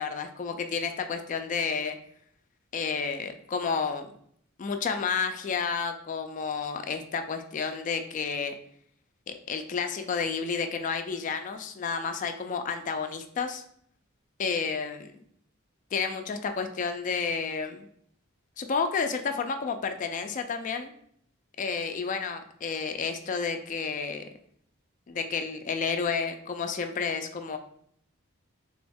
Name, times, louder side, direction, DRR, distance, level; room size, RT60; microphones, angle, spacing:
voice 1, 0.0-2.0 2.7-4.1 4.6-8.6 9.3-13.6 14.4-15.2 15.9-17.9 18.6-20.9 21.6-24.3 25.1-27.6, left 5 dB, 40° left, 7 dB, 0.3 m, -31 dB
3.4 x 3.0 x 3.4 m, 0.66 s
head